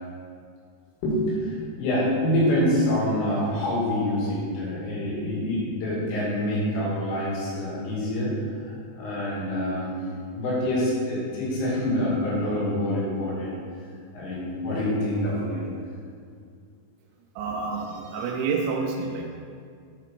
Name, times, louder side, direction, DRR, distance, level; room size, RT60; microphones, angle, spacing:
voice 1, 1.0-10.0 10.3-13.6 14.1-15.6, left 1 dB, 70° left, -6 dB, 4.9 m, -26 dB
voice 2, 17.4-19.3, right 4 dB, 90° right, 0 dB, 3.6 m, -28 dB
11.5 x 5.1 x 4.5 m, 2.3 s
omnidirectional pair, 5.9 m